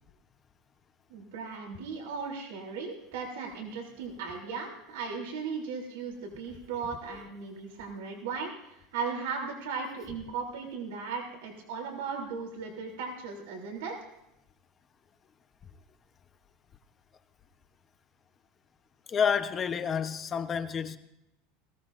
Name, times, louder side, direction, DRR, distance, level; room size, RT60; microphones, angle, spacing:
voice 1, 1.1-14.0, right 5 dB, 85° right, 3.3 m, -37 dB
voice 2, 19.1-21.0, left 7 dB, 30° left, 0.9 m, -29 dB
20.5 x 15.0 x 2.6 m
supercardioid pair, 130°, 0 cm